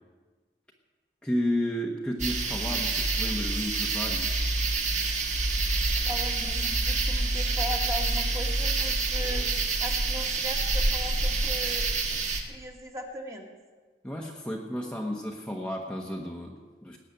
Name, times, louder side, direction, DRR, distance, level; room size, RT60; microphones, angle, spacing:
voice 1, 1.2-4.3 14.0-17.0, equal, 5° left, -1 dB, 1.1 m, -32 dB
sound 1, 2.2-12.4, right 3 dB, 40° right, 1.7 m, -27 dB
voice 2, 6.0-9.5 9.8-13.5, equal, 20° right, 1 dB, 2.0 m, -39 dB
19.5 x 7.4 x 9.4 m, 1.4 s
head